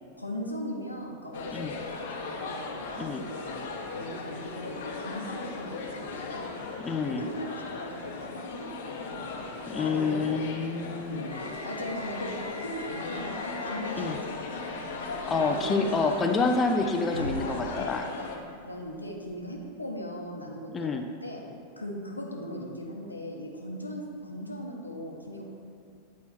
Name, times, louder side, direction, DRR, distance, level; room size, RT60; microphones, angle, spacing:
voice 1, 0.2-6.6 7.0-10.4 11.1-11.3 11.6-14.8 15.3-16.2 17.4-17.6 18.2-18.3 18.6-21.4 21.8-25.4, equal, 85° left, 0 dB, 0.9 m, -39 dB
sound 1, 1.3-18.4, left 4 dB, 55° left, 0.8 m, -38 dB
voice 2, 6.8-7.3 9.7-11.3 13.9-14.2 15.3-18.1 20.7-21.0, left 4 dB, 20° left, 4 dB, 0.4 m, -28 dB
sound 2, 11.3-19.7, equal, 85° right, 0.4 m, -44 dB
8.5 x 4.1 x 4.3 m, 2.3 s
figure-of-eight pair, 90°, 0 cm